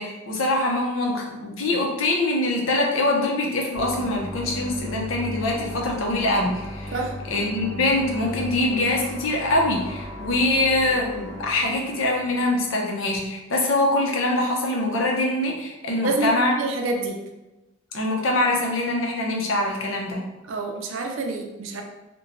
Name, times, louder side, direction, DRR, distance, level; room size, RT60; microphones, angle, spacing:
voice 1, 0.0-7.0 7.3-16.5 17.9-20.2, left 2 dB, 85° left, 0 dB, 0.6 m, -24 dB
sound 1, 3.7-12.7, left 1 dB, 10° left, 0.7 m, -36 dB
voice 2, 15.9-17.2 20.5-21.8, right 2 dB, 80° right, 3 dB, 0.4 m, -27 dB
2.9 x 2.2 x 2.5 m, 1.0 s
head